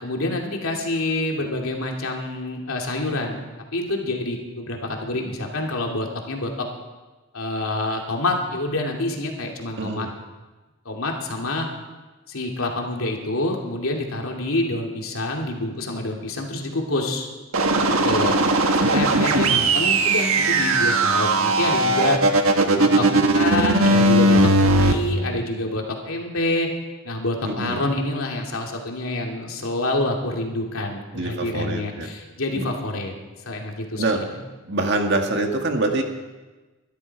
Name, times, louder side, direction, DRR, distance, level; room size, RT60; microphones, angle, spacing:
voice 1, 0.0-3.4 3.7-6.7 7.3-10.1 10.8-11.7 12.3-17.3 18.0-18.4 18.8-22.2 22.8-26.7 27.0-33.1 33.5-34.3, left 2 dB, 85° left, 1 dB, 2.6 m, -27 dB
voice 2, 9.8-10.1 18.9-19.7 27.4-27.8 31.1-32.1 32.6-32.7 34.0-34.2 34.7-36.0, right 2 dB, 55° right, 3 dB, 1.9 m, -25 dB
sound 1, 17.5-24.9, right 2 dB, 85° right, 1.4 m, -18 dB
22.5 x 12.5 x 4.7 m, 1.2 s
head